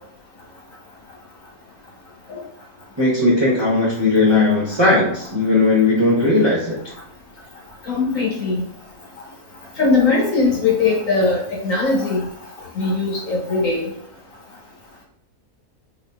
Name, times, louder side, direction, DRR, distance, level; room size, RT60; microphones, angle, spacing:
voice 1, 3.0-6.9, left 2 dB, 25° right, -7 dB, 0.7 m, -17 dB
voice 2, 7.8-8.6 9.8-12.3 12.7-13.9, left 3 dB, 60° left, -4 dB, 1.5 m, -20 dB
4.0 x 2.7 x 2.2 m, 0.71 s
omnidirectional pair, 1.6 m